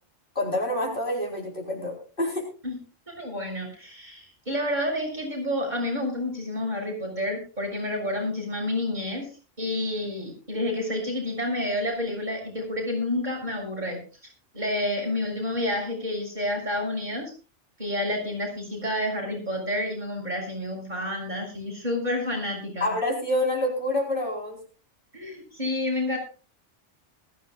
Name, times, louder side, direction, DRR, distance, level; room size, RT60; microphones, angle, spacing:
voice 1, 0.3-2.4 22.8-24.6, left 1 dB, 45° left, -1 dB, 4.6 m, -27 dB
voice 2, 3.0-9.3 9.6-14.0 14.5-17.3 17.8-22.9 25.1-26.2, left 1 dB, 35° right, 0 dB, 6.8 m, -29 dB
21.0 x 14.5 x 2.5 m, 0.36 s
omnidirectional pair, 1.2 m